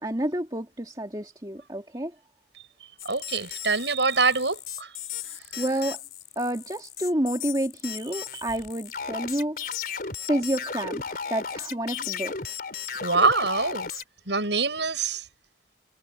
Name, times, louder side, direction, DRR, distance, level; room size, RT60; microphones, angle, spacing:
voice 1, 0.0-2.1 5.6-6.0 6.4-9.6 10.3-12.3, right 1 dB, 20° right, 2.4 m, -29 dB
sound 1, 3.0-14.0, left 6 dB, 50° left, 4.3 m, -35 dB
voice 2, 3.0-5.4 13.0-13.9 14.3-15.3, right 4 dB, 75° right, 7.7 m, -25 dB
head